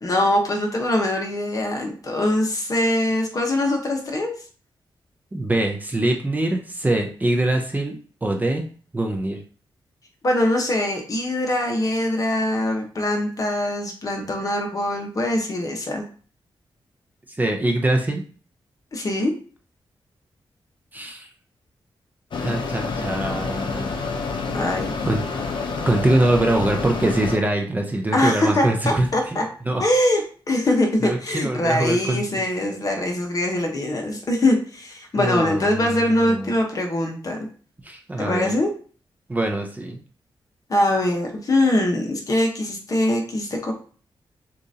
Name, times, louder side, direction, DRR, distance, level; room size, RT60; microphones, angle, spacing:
voice 1, 0.0-4.3 10.2-16.0 18.9-19.3 24.5-24.9 28.1-29.4 29.8-37.5 38.2-38.7 40.7-43.7, left 1 dB, 40° left, 2 dB, 1.1 m, -22 dB
voice 2, 5.3-8.6 8.9-9.4 17.3-18.2 20.9-21.3 22.4-24.0 25.1-25.2 25.9-29.4 29.7-29.8 31.0-32.2 35.1-36.5 37.8-38.6 39.3-40.0, right 1 dB, 20° right, 2 dB, 0.6 m, -23 dB
Mechanisms, 22.3-27.4, left 4 dB, 65° left, 0.7 m, -28 dB
6.6 x 2.6 x 2.8 m, 0.41 s
wide cardioid pair, 110°, 9 cm